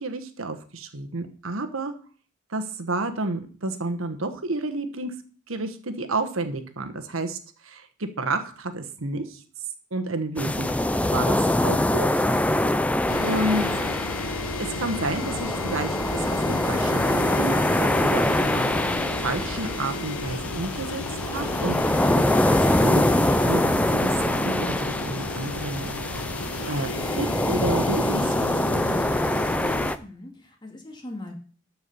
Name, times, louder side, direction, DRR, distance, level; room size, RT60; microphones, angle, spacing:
voice 1, 0.0-1.9 2.5-5.1 5.5-7.4 7.6-9.4 9.9-12.2 13.2-13.7 14.6-18.7 19.2-21.8 22.1-23.0 23.5-26.0 26.7-29.0, right 2 dB, 80° right, 7 dB, 1.2 m, -30 dB
sound 1, 10.4-30.0, left 1 dB, 5° left, 0.4 m, -24 dB
sound 2, 13.1-29.9, left 2 dB, 75° left, 0.9 m, -34 dB
voice 2, 29.9-31.3, left 2 dB, 20° left, 2 dB, 2.1 m, -40 dB
12.5 x 4.7 x 6.7 m, 0.42 s
head